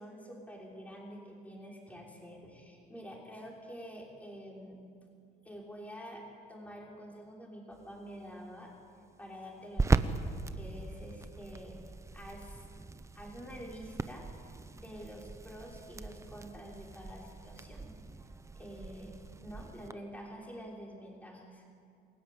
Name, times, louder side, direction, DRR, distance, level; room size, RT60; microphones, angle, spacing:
voice 1, 0.0-4.8 5.4-6.2 6.5-8.7 9.2-10.1 10.5-11.8 12.1-12.7 13.1-14.3 14.8-18.0 18.5-21.6, equal, 10° left, -2 dB, 5.9 m, -47 dB
sound 1, 7.7-19.9, right 3 dB, 15° right, 0.9 m, -38 dB
28.0 x 17.5 x 8.7 m, 2.3 s
cardioid pair, 110°, 17 cm